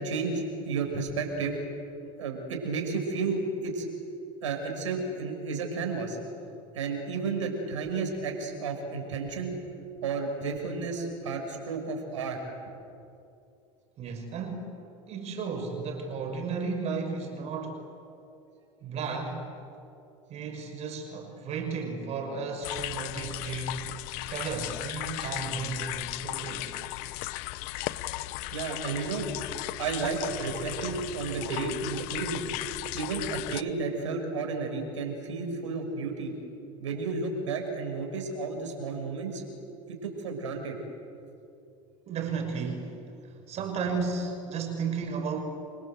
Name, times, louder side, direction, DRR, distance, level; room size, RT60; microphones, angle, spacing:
voice 1, 0.0-1.6 2.2-3.9 4.4-6.2 6.7-9.5 10.0-12.4 28.5-29.3 29.8-32.5 32.9-36.3 36.8-39.4 39.9-40.8, right 4 dB, 90° right, 3 dB, 6.4 m, -32 dB
voice 2, 14.0-14.7 15.1-17.9 18.8-19.5 20.3-23.8 24.3-26.8 42.1-43.0 43.2-45.4, right 4 dB, 45° right, 4 dB, 5.9 m, -34 dB
sound 1, 22.6-33.6, left 18 dB, 65° left, 1.0 m, -36 dB
29.5 x 25.0 x 8.1 m, 2.7 s
hypercardioid pair, 95°, 15 cm